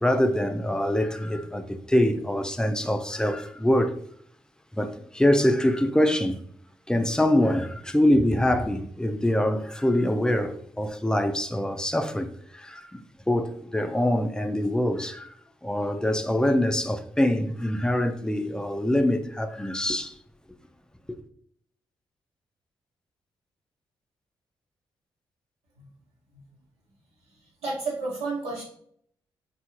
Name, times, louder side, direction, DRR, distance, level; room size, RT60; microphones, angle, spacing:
voice 1, 0.0-3.9 4.7-6.4 6.9-15.3 15.6-20.2 21.1-21.2, left 1 dB, 5° left, 0.4 m, -24 dB
voice 2, 27.6-28.6, right 3 dB, 85° right, 0.9 m, -31 dB
3.6 x 2.3 x 2.9 m
hypercardioid pair, 40°, 11 cm